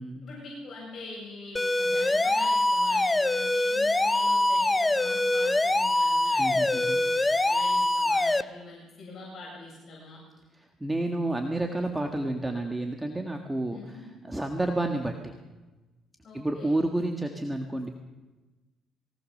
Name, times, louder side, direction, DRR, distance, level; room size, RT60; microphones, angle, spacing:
voice 1, 0.2-10.2 13.7-14.0 16.2-16.8, left 2 dB, 45° left, -4 dB, 8.0 m, -44 dB
sound 1, 1.6-8.4, left 2 dB, 15° left, 0.8 m, -24 dB
voice 2, 6.4-7.0 10.5-15.4 16.3-17.9, right 1 dB, 10° right, 4 dB, 1.7 m, -30 dB
22.0 x 18.5 x 6.7 m, 1.2 s
cardioid pair, 110°, 0 cm